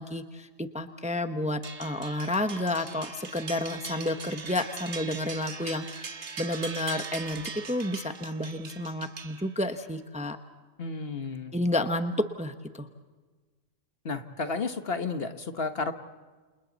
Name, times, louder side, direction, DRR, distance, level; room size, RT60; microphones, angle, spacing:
voice 1, 0.0-10.4 11.5-12.9, left 1 dB, 5° right, 8 dB, 0.9 m, -31 dB
sound 1, 1.6-9.8, right 5 dB, 60° right, 1.7 m, -41 dB
voice 2, 10.8-11.5 14.0-15.9, left 4 dB, 50° left, 8 dB, 1.5 m, -32 dB
29.0 x 28.0 x 4.1 m, 1.4 s
omnidirectional pair, 1.3 m